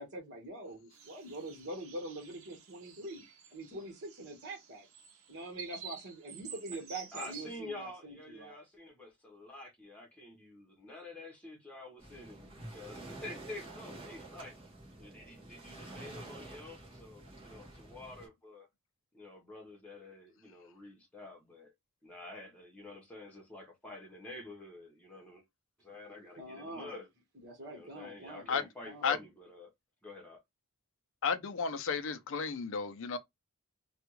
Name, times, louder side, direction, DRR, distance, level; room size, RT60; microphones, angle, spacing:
voice 1, 0.0-3.2 3.5-4.9 5.3-8.6 26.3-27.0 27.4-29.1, right 1 dB, 50° right, 1.3 m, -44 dB
sound 1, 0.9-7.5, right 6 dB, 70° right, 0.9 m, -50 dB
voice 2, 7.1-14.5 15.0-18.7 19.1-21.7 22.0-25.4 25.8-27.1 27.6-29.7 30.0-30.4, left 2 dB, 5° left, 1.0 m, -48 dB
Waves surf, 12.0-18.3, right 2 dB, 25° right, 1.5 m, -49 dB
voice 3, 31.2-33.2, left 5 dB, 60° left, 0.5 m, -33 dB
3.4 x 2.3 x 3.0 m
head